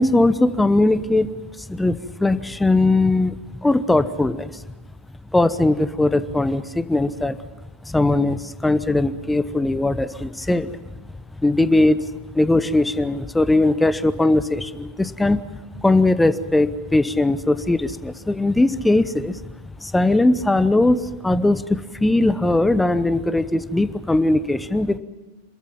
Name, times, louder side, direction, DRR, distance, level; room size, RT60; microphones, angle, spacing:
voice 1, 0.0-3.3 3.6-4.6 5.3-7.4 7.9-10.8 11.4-12.1 12.3-15.4 15.8-19.3 19.8-25.0, left 2 dB, 5° left, 15 dB, 0.9 m, -19 dB
27.5 x 14.0 x 9.0 m, 1.2 s
figure-of-eight pair, 90°, 0 cm